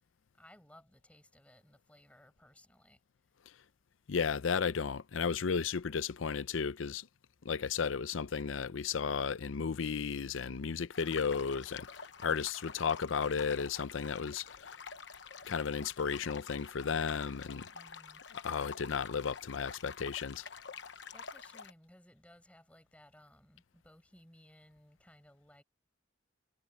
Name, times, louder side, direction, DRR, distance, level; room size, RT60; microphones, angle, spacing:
voice 1, 0.4-3.0 17.7-18.2 21.1-25.6, left 1 dB, 5° left, 6.9 m, -60 dB
voice 2, 4.1-7.1 7.4-14.8 15.5-17.7 18.3-20.4, left 6 dB, 85° left, 0.6 m, -34 dB
sound 1, 10.9-21.7, left 6 dB, 65° left, 1.0 m, -48 dB
head